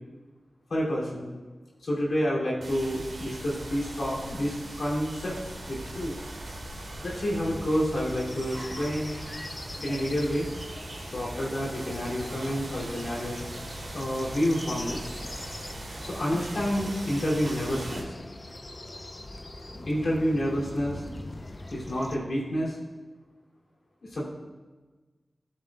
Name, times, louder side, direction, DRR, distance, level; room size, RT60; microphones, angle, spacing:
voice 1, 0.7-1.3 1.8-6.2 7.0-9.2 9.8-10.5 11.1-13.4 13.9-15.1 16.0-18.1 19.9-21.0 21.7-22.8 24.1-24.2, equal, 75° left, -5 dB, 2.8 m, -29 dB
sound 1, 2.6-18.0, right 1 dB, 85° right, 1.9 m, -40 dB
sound 2, 7.9-22.2, left 2 dB, 40° left, 0.8 m, -43 dB
14.0 x 7.5 x 2.4 m, 1.3 s
cardioid pair, 45°, 0 cm